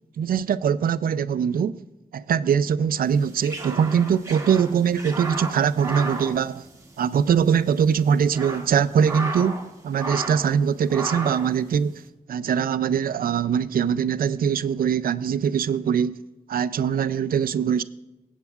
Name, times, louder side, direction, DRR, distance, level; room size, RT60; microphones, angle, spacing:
voice 1, 0.2-1.8 2.1-6.6 7.0-12.0 12.3-16.2 16.5-17.8, right 7 dB, 80° right, 0.4 m, -22 dB
sound 1, 3.1-7.2 7.5-7.6 8.1-9.7 9.9-10.6 10.9-11.5, right 2 dB, 20° right, 1.2 m, -33 dB
23.5 x 8.2 x 2.4 m
wide cardioid pair, 160°, 15 cm